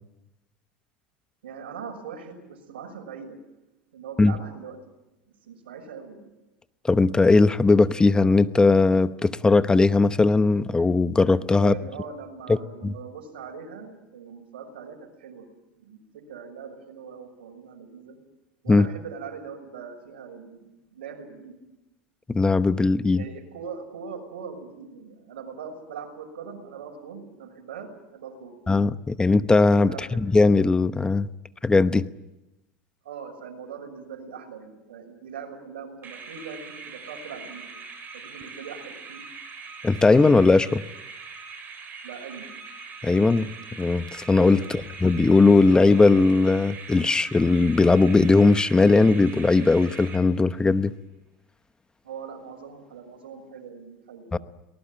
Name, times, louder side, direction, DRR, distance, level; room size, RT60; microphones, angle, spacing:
voice 1, 1.4-3.4 3.9-4.8 5.4-6.3 11.6-15.5 15.8-18.2 18.6-20.6 20.9-21.5 23.1-28.5 29.8-30.3 33.0-37.7 38.1-39.2 42.0-42.5 44.6-44.8 52.0-54.3, right 6 dB, 85° right, 3 dB, 6.2 m, -41 dB
voice 2, 6.8-11.7 12.5-12.6 12.8-12.9 18.7-18.9 22.3-23.2 28.7-31.3 31.6-32.1 39.8-40.8 43.0-43.5 43.8-50.9 54.3-54.4, left 3 dB, 15° left, 13 dB, 1.0 m, -19 dB
sound 1, 36.0-50.7, right 5 dB, 35° right, 7.6 m, -42 dB
24.0 x 19.5 x 9.0 m, 0.99 s
hypercardioid pair, 95°, 6 cm